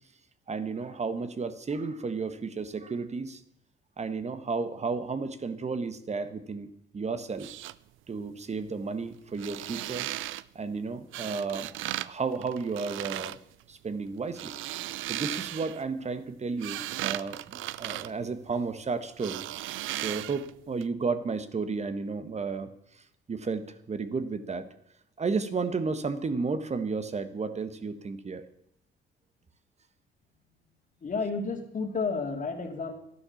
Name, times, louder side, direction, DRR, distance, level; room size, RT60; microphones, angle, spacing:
voice 1, 0.5-3.4 4.0-7.5 8.1-10.1 10.5-13.4 13.7-14.5 15.1-19.5 19.9-22.7 23.0-24.7 25.2-28.4, right 4 dB, 35° right, 11 dB, 1.3 m, -33 dB
sound 1, 7.3-7.7 9.3-10.4 11.1-12.1 12.4-13.4 14.2-15.8 16.3-18.8 19.2-20.5 20.8-20.9, right 15 dB, 80° right, 0.5 m, -36 dB
voice 2, 31.0-32.9, left 4 dB, 40° left, 3 dB, 2.6 m, -31 dB
12.5 x 11.0 x 7.2 m, 0.76 s
cardioid pair, 90°, 20 cm